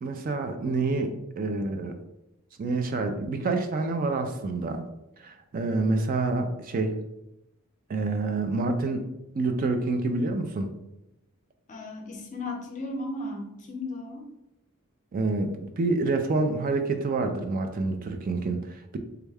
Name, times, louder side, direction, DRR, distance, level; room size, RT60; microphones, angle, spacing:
voice 1, 0.0-2.0 2.6-4.9 5.2-7.0 7.9-9.0 9.3-10.7 15.1-19.0, right 3 dB, 40° right, 7 dB, 0.3 m, -27 dB
voice 2, 11.7-14.3, left 2 dB, 35° left, 2 dB, 0.6 m, -35 dB
3.4 x 2.2 x 3.3 m, 0.88 s
head